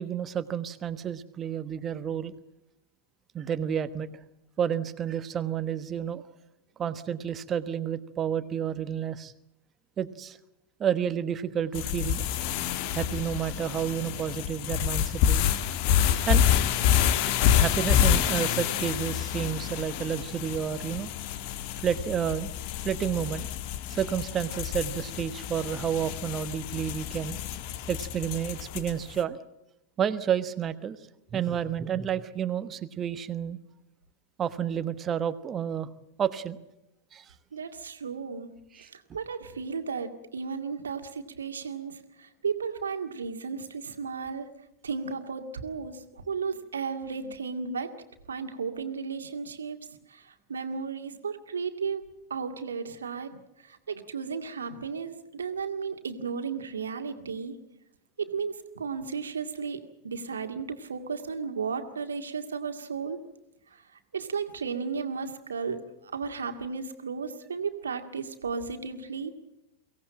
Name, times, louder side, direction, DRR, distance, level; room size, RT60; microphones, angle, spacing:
voice 1, 0.0-2.3 3.3-4.1 4.6-6.2 6.8-9.3 10.0-10.4 10.8-12.3 12.9-15.5 16.3-16.4 17.5-21.1 21.8-22.5 22.8-23.5 23.9-27.4 27.9-29.4 30.0-31.0 31.3-33.6 34.4-35.9 36.2-36.6 37.1-37.2 38.7-38.9, right 8 dB, 25° right, 13 dB, 1.3 m, -30 dB
sound 1, 11.7-29.1, left 10 dB, 45° left, 1.3 m, -28 dB
voice 2, 37.5-38.5 38.9-44.5 44.8-47.9 48.3-52.0 52.3-53.4 53.7-57.5 58.2-63.2 64.1-65.8 66.1-69.3, right 5 dB, 70° right, 7 dB, 2.1 m, -34 dB
23.5 x 17.5 x 8.8 m, 0.87 s
figure-of-eight pair, 90°, 0 cm